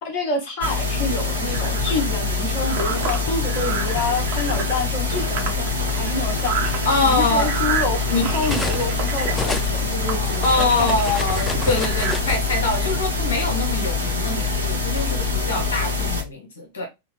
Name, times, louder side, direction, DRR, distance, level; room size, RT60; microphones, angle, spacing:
voice 1, 0.0-6.6 7.0-11.0, left 3 dB, 40° left, 1.1 m, -28 dB
sound 1, 0.6-16.2, left 3 dB, 85° right, 0.9 m, -24 dB
sound 2, 1.5-12.1, right 6 dB, 45° right, 1.0 m, -31 dB
Cutlery silverware, 2.8-4.1 5.1-5.3 5.7-8.9 9.2-12.4, left 2 dB, 10° left, 0.5 m, -32 dB
voice 2, 6.8-7.5 8.1-8.3 10.1-16.9, left 2 dB, 65° left, 0.9 m, -24 dB
4.2 x 2.2 x 3.0 m
figure-of-eight pair, 90°, 0 cm